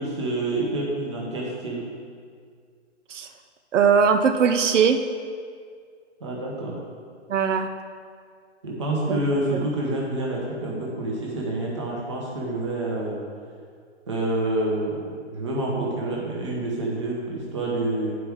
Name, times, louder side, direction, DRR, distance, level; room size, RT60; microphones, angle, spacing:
voice 1, 0.0-1.9 6.2-6.8 8.6-13.2 14.1-18.2, right 1 dB, 25° right, -4 dB, 0.9 m, -28 dB
voice 2, 3.7-5.0 7.3-7.7 9.1-9.2 9.5-9.7, right 6 dB, 80° right, 7 dB, 0.6 m, -20 dB
11.0 x 4.7 x 3.6 m, 2.1 s
hypercardioid pair, 180°, 36 cm